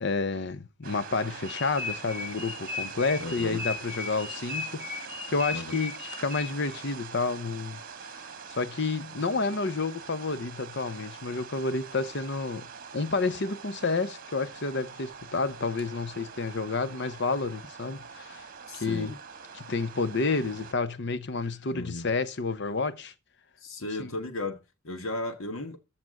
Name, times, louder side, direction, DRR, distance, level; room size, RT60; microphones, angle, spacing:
voice 1, 0.0-5.9 6.2-8.2 8.6-12.7 12.9-18.5 18.7-19.1 19.6-23.1 24.0-24.1, left 3 dB, 55° left, 0.8 m, -30 dB
sound 1, 0.8-20.7, right 6 dB, 40° right, 1.2 m, -44 dB
sound 2, 1.5-6.8, left 4 dB, 5° right, 1.0 m, -37 dB
voice 2, 3.2-3.7 5.5-5.8 18.7-19.2 21.7-22.1 23.6-25.8, left 2 dB, 70° left, 1.6 m, -35 dB
14.0 x 6.0 x 3.8 m
head